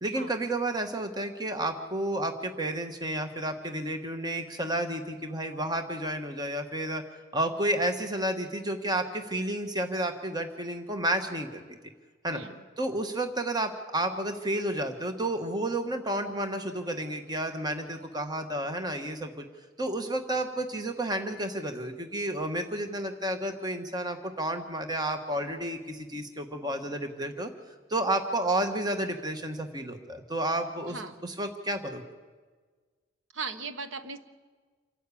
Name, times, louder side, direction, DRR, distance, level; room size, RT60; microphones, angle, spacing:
voice 1, 0.0-7.0 7.3-11.6 12.2-12.4 12.8-19.4 19.8-27.5 27.9-32.0, right 1 dB, 20° right, 6 dB, 1.3 m, -31 dB
voice 2, 33.3-34.2, right 4 dB, 75° right, 10 dB, 1.3 m, -37 dB
27.5 x 12.0 x 8.4 m, 1.4 s
head